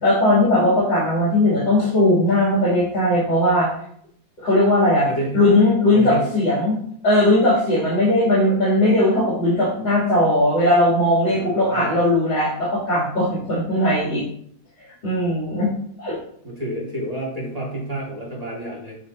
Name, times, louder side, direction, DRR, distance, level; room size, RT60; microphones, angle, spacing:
voice 1, 0.0-3.7 4.4-5.1 5.3-6.7 7.0-14.2 15.0-15.7 16.0-16.2, left 1 dB, 75° left, -10 dB, 3.4 m, -18 dB
voice 2, 5.0-5.4 5.9-6.3 11.3-12.0 16.4-19.0, right 1 dB, 20° right, -4 dB, 1.9 m, -29 dB
7.5 x 6.0 x 2.7 m, 0.64 s
omnidirectional pair, 2.0 m